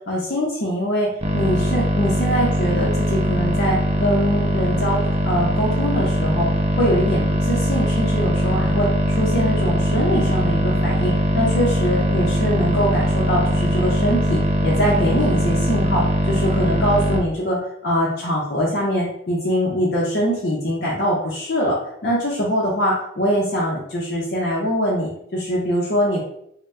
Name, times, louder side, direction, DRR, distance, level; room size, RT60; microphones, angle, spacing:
voice 1, 0.1-6.5 6.8-26.2, equal, 55° left, -5 dB, 0.6 m, -23 dB
sound 1, 1.2-17.2, equal, 35° right, 0.3 m, -21 dB
2.7 x 2.0 x 3.4 m, 0.73 s
head